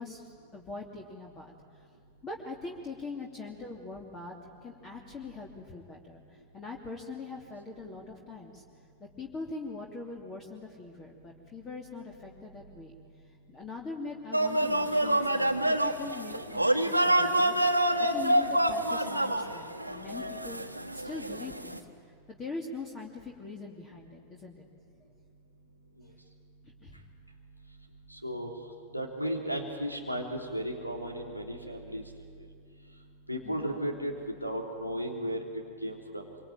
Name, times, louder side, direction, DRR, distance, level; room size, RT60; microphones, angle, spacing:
voice 1, 0.0-1.5 2.2-4.3 4.6-6.2 6.5-8.6 9.0-13.0 13.5-20.7 20.9-21.9 22.3-24.6 26.8-27.0 33.4-33.8, left 3 dB, 25° left, -1 dB, 2.9 m, -42 dB
sound 1, 14.3-21.8, right 1 dB, 85° right, 1.4 m, -27 dB
voice 2, 28.1-28.5 28.9-32.0 33.3-35.4 35.8-36.2, equal, 90° left, 2 dB, 3.4 m, -34 dB
26.0 x 25.0 x 9.0 m, 2.1 s
figure-of-eight pair, 90°, 0 cm